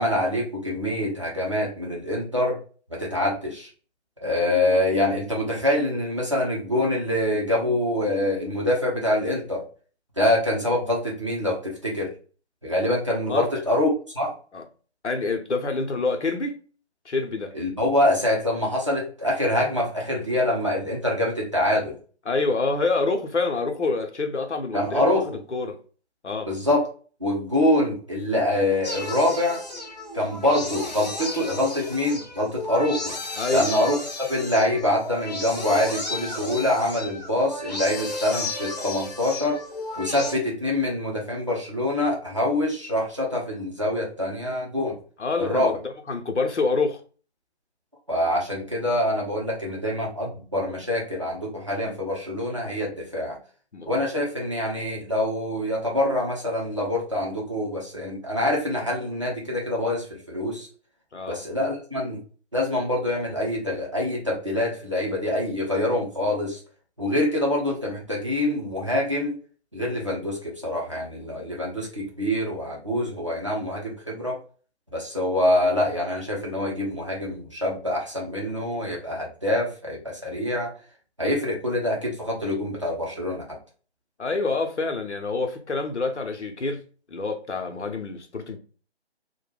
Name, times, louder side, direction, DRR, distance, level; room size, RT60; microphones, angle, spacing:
voice 1, 0.0-2.6 2.9-3.7 4.2-9.7 10.2-12.1 12.6-13.9 14.1-14.3 17.5-22.0 24.7-25.2 26.5-26.9 27.2-29.6 30.1-33.2 33.5-39.6 40.0-45.0 45.4-45.7 48.1-53.4 53.9-60.7 61.3-62.2 62.5-66.6 67.0-69.4 69.7-74.4 74.9-80.7 81.2-83.6, left 1 dB, 30° right, 0.5 m, -25 dB
voice 2, 15.0-16.6 17.1-17.6 22.3-25.2 25.5-25.8 26.2-26.5 33.4-33.7 45.2-45.7 46.1-47.0 53.7-53.9 61.1-61.4 84.2-86.8 87.1-88.6, left 3 dB, 85° left, 0.7 m, -27 dB
sound 1, 28.8-40.3, left 2 dB, 40° left, 0.5 m, -33 dB
2.2 x 2.1 x 3.2 m
figure-of-eight pair, 155°, 34 cm